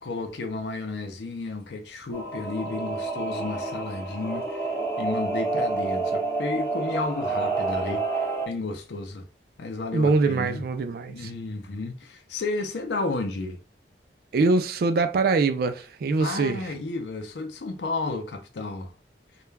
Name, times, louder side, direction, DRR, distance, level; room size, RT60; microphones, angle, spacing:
voice 1, 0.0-4.4 5.0-9.2 9.6-10.6 11.1-13.6 16.2-18.9, left 3 dB, 70° left, 0.5 m, -32 dB
Singing / Musical instrument, 2.1-8.5, right 3 dB, 15° left, 0.8 m, -29 dB
voice 2, 9.9-11.3 14.3-16.7, right 3 dB, 55° right, 0.3 m, -23 dB
2.3 x 2.2 x 3.1 m
head